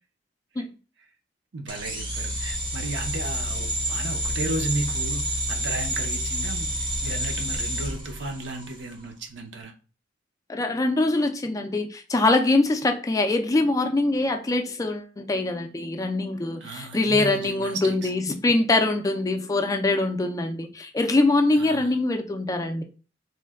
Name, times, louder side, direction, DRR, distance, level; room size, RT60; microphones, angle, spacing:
voice 1, 1.5-9.7 16.6-18.1 21.6-22.0, right 2 dB, 70° right, 4 dB, 0.6 m, -34 dB
sound 1, 1.7-8.8, equal, 25° right, 0.6 m, -29 dB
voice 2, 10.5-22.8, left 2 dB, 20° left, 5 dB, 0.3 m, -23 dB
3.1 x 2.1 x 3.4 m, 0.36 s
head